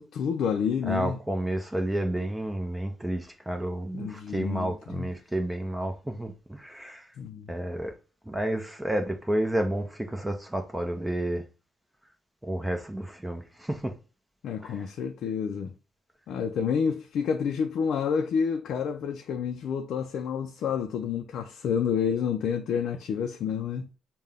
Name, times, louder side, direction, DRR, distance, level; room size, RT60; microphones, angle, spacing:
voice 1, 0.0-1.2 3.9-5.1 7.2-7.5 14.4-15.7 16.3-23.9, left 7 dB, 75° left, 0.4 m, -29 dB
voice 2, 0.9-7.1 7.5-7.9 8.3-11.4 12.4-13.9 14.6-14.7, right 1 dB, 10° right, 0.7 m, -30 dB
5.4 x 2.2 x 3.5 m
cardioid pair, 90°, 0 cm